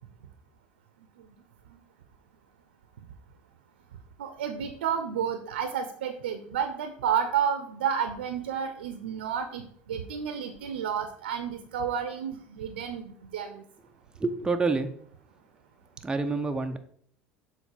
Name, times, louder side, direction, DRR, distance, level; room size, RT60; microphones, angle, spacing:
voice 1, 4.2-13.6, right 8 dB, 80° right, 8 dB, 0.7 m, -31 dB
voice 2, 14.2-14.9 16.0-16.8, right 3 dB, 15° right, 6 dB, 0.7 m, -27 dB
6.9 x 3.9 x 4.5 m, 0.62 s
hypercardioid pair, 80°, 6 cm